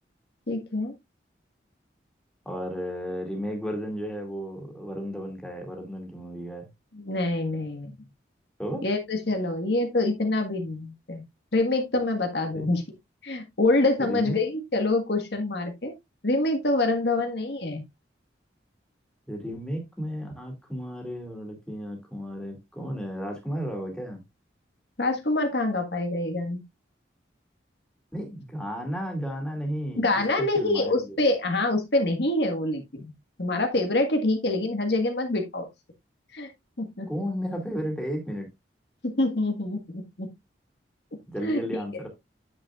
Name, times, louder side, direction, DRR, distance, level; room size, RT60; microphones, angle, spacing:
voice 1, 0.5-0.9 6.9-8.0 8.8-11.2 11.5-12.8 13.2-15.9 16.2-17.8 25.0-26.6 30.0-33.1 33.4-35.7 36.3-36.5 36.8-37.3 39.0-40.3 41.4-41.8, left 2 dB, 65° left, 1.6 m, -26 dB
voice 2, 2.5-6.7 8.6-8.8 12.5-12.7 14.0-14.4 19.3-24.2 28.1-31.2 37.1-38.5 41.3-42.1, equal, 5° left, 2.4 m, -33 dB
9.4 x 7.9 x 2.4 m
head